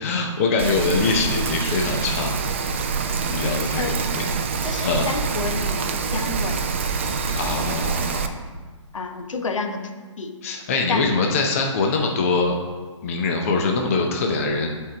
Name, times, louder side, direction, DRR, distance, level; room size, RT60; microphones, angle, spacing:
voice 1, 0.0-2.3 3.2-4.2 4.8-5.1 7.4-8.3 10.4-12.6 13.0-14.7, left 3 dB, 25° left, 2 dB, 0.6 m, -23 dB
Rain, 0.6-8.3, right 5 dB, 25° right, 0.3 m, -26 dB
voice 2, 3.8-4.1 4.6-6.7 8.9-9.8 10.2-10.3 10.9-11.2, left 4 dB, 75° left, 5 dB, 1.0 m, -29 dB
10.5 x 4.5 x 3.8 m, 1.4 s
hypercardioid pair, 160°, 16 cm